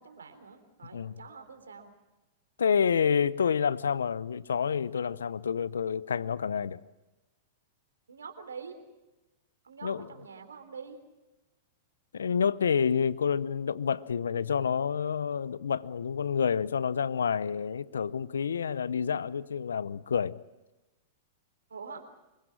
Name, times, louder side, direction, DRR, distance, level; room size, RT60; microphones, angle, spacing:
voice 1, 0.0-1.9 8.1-8.8 9.6-11.0 21.7-22.0, right 5 dB, 85° right, 3.6 m, -45 dB
voice 2, 2.6-6.8 9.8-10.0 12.1-20.4, left 7 dB, 80° left, 0.7 m, -28 dB
25.0 x 22.0 x 6.1 m
hypercardioid pair, 105°, 0 cm